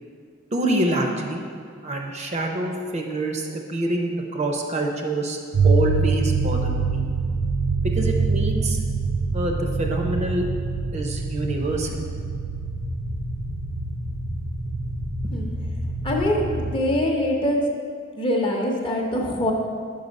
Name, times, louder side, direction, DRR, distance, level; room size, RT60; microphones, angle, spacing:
voice 1, 0.5-1.4 1.8-5.4 5.6-7.1 7.9-8.8 9.3-10.5 10.9-12.1 15.2-15.3, right 2 dB, 35° right, 2 dB, 0.6 m, -26 dB
sound 1, 5.5-16.7, right 3 dB, 70° right, 0.8 m, -25 dB
voice 2, 16.0-17.6 18.2-19.5, left 1 dB, 25° left, 0 dB, 0.7 m, -23 dB
5.4 x 5.3 x 5.2 m, 2.1 s
head